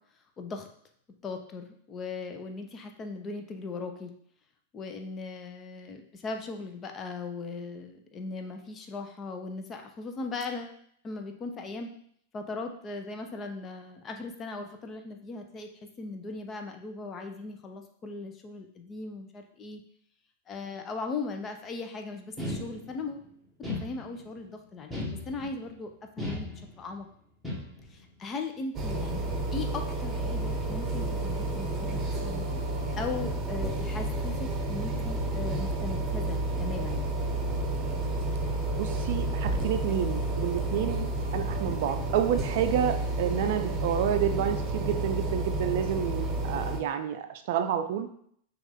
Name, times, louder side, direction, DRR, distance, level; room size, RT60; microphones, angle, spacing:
voice 1, 0.4-0.7 1.2-4.1 4.7-11.9 12.3-15.7 16.0-19.8 20.5-23.3 23.8-25.9 26.2-27.1 27.9-32.5 33.0-37.1, left 3 dB, 30° left, 5 dB, 0.7 m, -38 dB
sound 1, 22.4-23.1 23.6-24.4 24.9-25.7 26.2-27.0 27.4-28.0, left 2 dB, ahead, 1.4 m, -36 dB
sound 2, 28.7-46.8, right 2 dB, 25° right, 1.0 m, -31 dB
sound 3, 34.5-41.8, left 2 dB, 80° left, 1.1 m, -44 dB
voice 2, 38.8-41.1 41.3-48.1, right 9 dB, 55° right, 8 dB, 0.4 m, -29 dB
6.2 x 2.5 x 3.5 m, 0.65 s
figure-of-eight pair, 95°, 0 cm